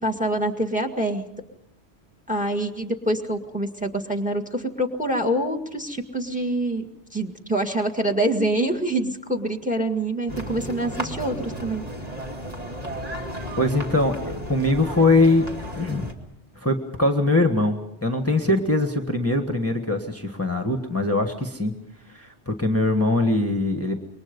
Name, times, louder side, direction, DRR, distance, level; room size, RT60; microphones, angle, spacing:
voice 1, 0.0-1.3 2.3-11.8, right 1 dB, 5° right, 5 dB, 2.0 m, -26 dB
sound 1, 10.3-16.1, equal, 35° right, 2.7 m, -34 dB
voice 2, 13.6-15.5 15.7-16.1 16.5-21.7 22.1-24.0, left 2 dB, 10° left, 5 dB, 1.6 m, -22 dB
28.0 x 23.0 x 5.3 m, 0.79 s
omnidirectional pair, 1.2 m